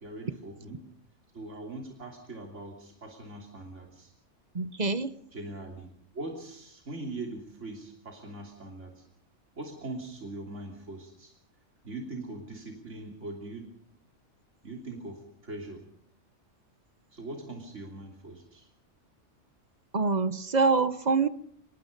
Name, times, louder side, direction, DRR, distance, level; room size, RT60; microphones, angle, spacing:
voice 1, 0.0-0.9 1.3-4.1 5.3-5.9 6.1-9.0 9.6-11.3 11.8-13.7 14.6-15.9 17.1-18.7, right 2 dB, 70° right, 1 dB, 3.5 m, -41 dB
voice 2, 4.5-5.1 19.9-21.3, right 4 dB, 35° right, 13 dB, 1.1 m, -25 dB
24.0 x 21.5 x 5.3 m, 0.67 s
omnidirectional pair, 1.3 m